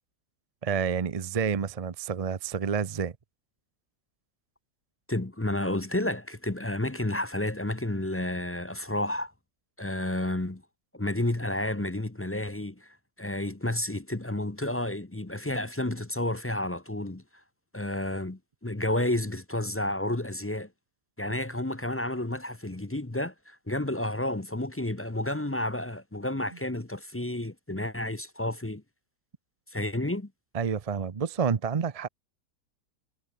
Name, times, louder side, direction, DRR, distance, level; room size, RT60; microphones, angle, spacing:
voice 1, 0.6-3.1 30.5-32.1, right 6 dB, 45° right, 0.4 m, -29 dB
voice 2, 5.1-9.3 9.8-10.6 10.9-17.2 17.7-20.7 21.2-28.8 29.7-30.3, left 1 dB, 10° left, 0.6 m, -31 dB
omnidirectional pair, 1.8 m